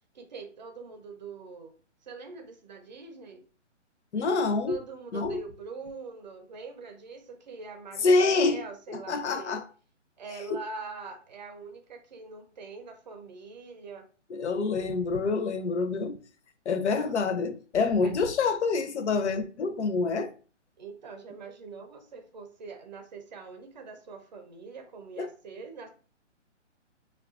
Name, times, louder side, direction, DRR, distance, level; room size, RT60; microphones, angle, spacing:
voice 1, 0.1-1.7 2.0-3.4 4.7-9.6 10.2-14.1 16.9-17.4 18.0-18.1 20.8-25.9, right 4 dB, 35° right, 0.6 m, -43 dB
voice 2, 4.1-4.8 5.1-5.4 8.0-8.6 8.9-9.6 10.5-10.6 14.3-16.2 16.7-20.3 25.2-25.3, left 4 dB, 65° left, 0.7 m, -26 dB
4.6 x 2.3 x 2.3 m
hypercardioid pair, 165°, 37 cm